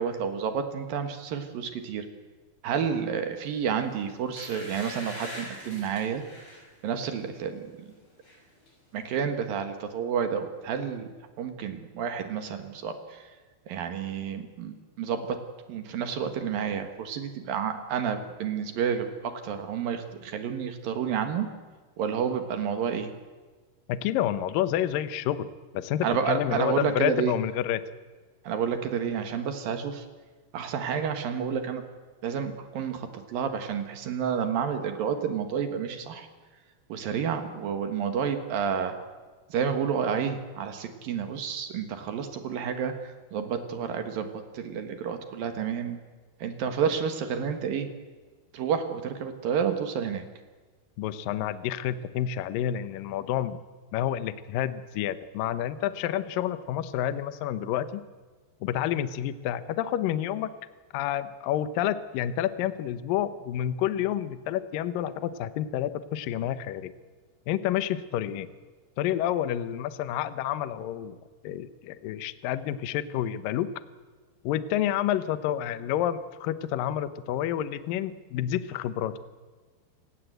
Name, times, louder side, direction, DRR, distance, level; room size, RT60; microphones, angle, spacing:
voice 1, 0.0-2.0 2.6-6.2 6.8-7.6 8.9-11.1 11.4-13.0 13.7-15.3 15.7-21.5 22.0-23.1 26.0-27.3 28.4-30.0 30.5-31.8 32.2-36.3 36.9-38.9 39.5-42.9 43.3-44.3 44.5-46.0 46.4-47.9 48.5-50.2, right 7 dB, 60° right, 7 dB, 2.9 m, -30 dB
sound 1, 3.6-3.8 4.3-6.6 7.1-7.3 7.7-8.4 8.7-8.8, equal, 25° left, 7.9 m, -42 dB
voice 2, 23.9-25.5 25.7-27.8 51.0-53.6 53.9-58.0 58.6-60.5 60.9-66.9 67.5-68.5 69.0-71.2 71.4-73.7 74.4-79.2, left 11 dB, 80° left, 13 dB, 2.0 m, -29 dB
28.5 x 17.0 x 8.1 m, 1.4 s
omnidirectional pair, 5.4 m